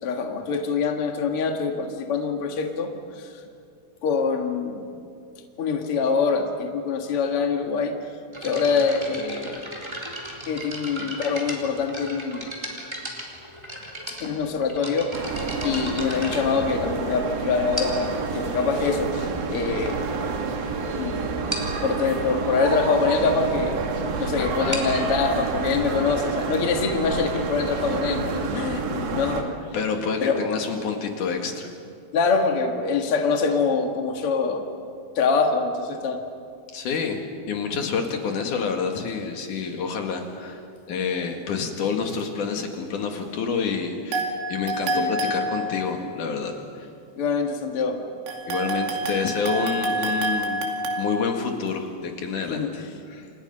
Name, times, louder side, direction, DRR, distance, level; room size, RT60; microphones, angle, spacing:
voice 1, 0.0-3.3 4.0-4.9 5.6-7.9 8.4-9.6 10.5-12.5 14.2-15.1 15.6-20.0 21.0-21.2 21.8-23.8 24.2-29.5 30.2-30.6 32.1-34.6 35.1-36.2 44.9-45.1 47.1-48.0 52.5-52.9, left 5 dB, 70° left, 3 dB, 1.3 m, -24 dB
sound 1, 8.3-17.2 17.7-18.2 19.0-19.1 19.7-19.8 20.1-20.3 20.6-20.7 21.0-21.1 21.5-21.8 24.5-28.0, equal, 5° right, 2.8 m, -36 dB
sound 2, 15.1-29.4, right 4 dB, 55° right, 3.5 m, -29 dB
voice 2, 24.4-24.8 29.7-31.7 36.7-37.2 37.5-40.6 40.9-44.2 44.5-46.9 48.5-50.7 51.0-53.3, left 5 dB, 50° left, 3 dB, 2.8 m, -28 dB
sound 3, 44.1-46.1 48.3-51.1, right 1 dB, 85° right, 5.0 m, -27 dB
29.5 x 27.5 x 5.6 m, 2.3 s
omnidirectional pair, 5.6 m